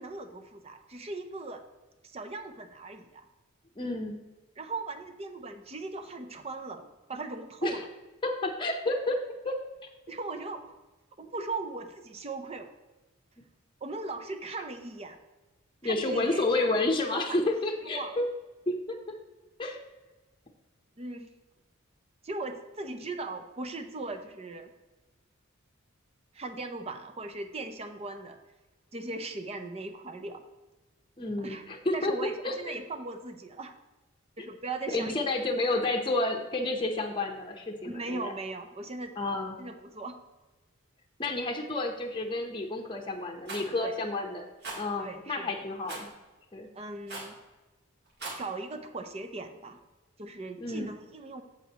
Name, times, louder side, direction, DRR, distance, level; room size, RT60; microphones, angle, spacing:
voice 1, 0.0-1.6 2.0-3.3 4.6-7.9 10.1-10.7 11.2-12.7 13.8-15.2 15.8-16.8 17.1-17.4 17.8-18.1 21.0-21.3 22.2-24.7 26.3-28.4 28.9-30.4 31.4-31.7 31.9-33.7 34.4-35.2 35.7-35.8 37.8-39.1 39.6-40.2 43.8-44.0 45.0-45.7 46.7-47.3 48.4-49.8 50.2-51.4, right 3 dB, 30° right, 7 dB, 0.6 m, -39 dB
voice 2, 3.8-4.2 7.6-7.8 8.2-9.2 9.4-9.6 15.8-18.3 18.7-19.0 19.6-19.8 31.2-32.8 34.9-38.3 39.2-39.6 41.2-44.5 44.7-46.1 46.5-46.7 50.6-50.9, left 2 dB, 25° left, 2 dB, 0.8 m, -30 dB
Rattle, 43.5-43.7 44.6-44.8 45.9-46.1 47.1-47.4 48.1-48.4, right 2 dB, 50° right, 2.3 m, -38 dB
8.7 x 7.3 x 2.9 m, 1.2 s
head